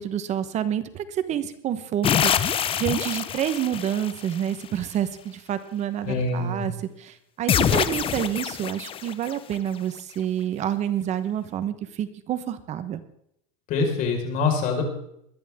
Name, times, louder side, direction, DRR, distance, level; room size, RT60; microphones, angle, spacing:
voice 1, 0.0-6.7 7.0-13.0, right 10 dB, 45° right, 12 dB, 1.2 m, -28 dB
sound 1, 2.0-4.3 7.5-9.6, left 9 dB, 35° left, 1.0 m, -25 dB
voice 2, 6.0-6.6 13.7-14.8, left 4 dB, 55° left, 2 dB, 5.1 m, -24 dB
20.5 x 12.5 x 3.7 m, 0.75 s
supercardioid pair, 110°, 17 cm